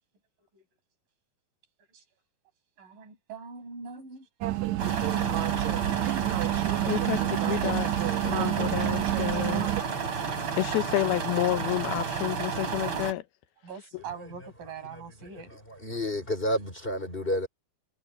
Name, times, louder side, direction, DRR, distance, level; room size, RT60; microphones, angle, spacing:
voice 1, 2.8-5.9 13.6-15.5, right 5 dB, 60° right, 8.6 m, -44 dB
sound 1, 4.4-9.8, right 16 dB, 90° right, 1.6 m, -29 dB
sound 2, 4.8-13.1, right 6 dB, 35° right, 3.5 m, -32 dB
voice 2, 6.9-9.7 10.6-13.2, left 16 dB, 90° left, 2.9 m, -30 dB
voice 3, 15.5-17.5, equal, 15° left, 4.2 m, -30 dB
omnidirectional pair, 4.3 m